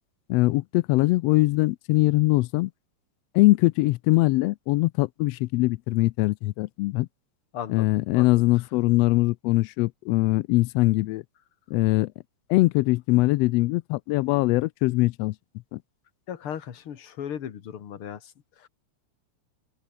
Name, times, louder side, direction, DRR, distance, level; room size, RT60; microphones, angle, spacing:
voice 1, 0.3-2.7 3.3-7.1 7.7-11.2 11.7-12.1 12.5-15.3 15.7-15.8, left 20 dB, 85° left, 1.4 m, -22 dB
voice 2, 7.5-7.9 8.1-8.4 16.3-18.7, left 9 dB, 50° left, 2.3 m, -36 dB
open air
omnidirectional pair, 3.4 m